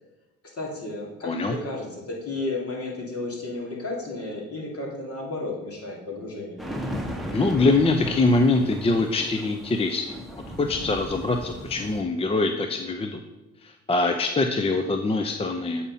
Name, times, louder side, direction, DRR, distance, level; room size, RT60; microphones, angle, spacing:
voice 1, 0.5-6.6, left 2 dB, 50° left, -2 dB, 2.7 m, -33 dB
voice 2, 1.2-1.5 7.3-13.2 13.6-15.9, left 3 dB, 20° left, 5 dB, 0.5 m, -24 dB
sound 1, 6.6-12.0, equal, ahead, 1.1 m, -35 dB
8.6 x 4.2 x 5.5 m, 1.1 s
cardioid pair, 90°, 30 cm